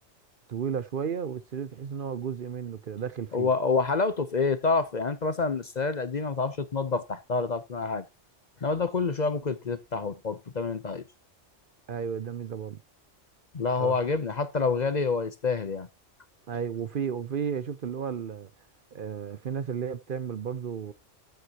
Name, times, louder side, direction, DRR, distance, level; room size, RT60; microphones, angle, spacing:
voice 1, 0.5-3.5 11.9-12.8 13.8-14.0 16.5-18.5 18.9-20.9, right 7 dB, 55° right, 0.8 m, -33 dB
voice 2, 3.3-8.0 8.6-11.0 13.5-15.9, left 4 dB, 40° left, 0.8 m, -27 dB
14.5 x 7.9 x 2.9 m
omnidirectional pair, 1.2 m